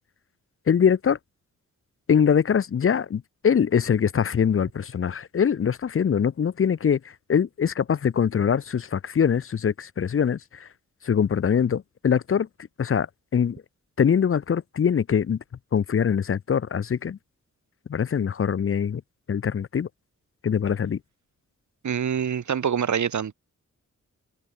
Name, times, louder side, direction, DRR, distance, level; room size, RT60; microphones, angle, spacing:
voice 1, 0.7-1.2 2.1-7.0 7.3-10.7 11.0-12.5 12.8-13.1 13.3-13.6 14.0-15.4 15.7-17.2 17.9-19.0 19.3-19.9 20.4-21.0, left 7 dB, 45° left, 0.6 m, -23 dB
voice 2, 21.8-23.3, right 8 dB, 75° right, 1.6 m, -25 dB
wide cardioid pair, 110°, 30 cm